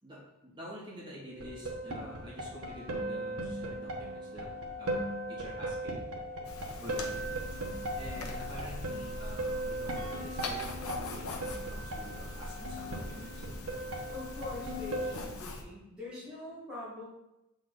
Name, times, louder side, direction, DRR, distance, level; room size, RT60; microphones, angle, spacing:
voice 1, 0.0-4.5 4.8-6.1 6.8-7.6 8.0-13.4, equal, 20° right, -6 dB, 2.1 m, -47 dB
sound 1, 1.3-15.1, right 1 dB, 80° right, 1.2 m, -38 dB
sound 2, 6.4-15.6, left 2 dB, 90° left, 0.9 m, -42 dB
voice 2, 14.1-17.1, left 3 dB, 5° right, -10 dB, 1.8 m, -43 dB
7.5 x 4.1 x 4.0 m, 0.92 s
head